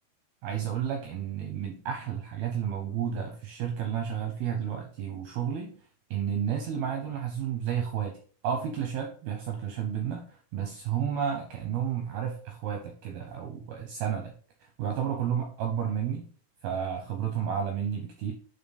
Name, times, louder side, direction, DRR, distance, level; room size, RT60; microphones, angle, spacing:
voice 1, 0.4-5.7 6.1-8.2 8.4-16.3 16.6-18.3, right 8 dB, 80° right, 3 dB, 2.2 m, -32 dB
9.2 x 3.9 x 4.1 m, 0.42 s
omnidirectional pair, 5.4 m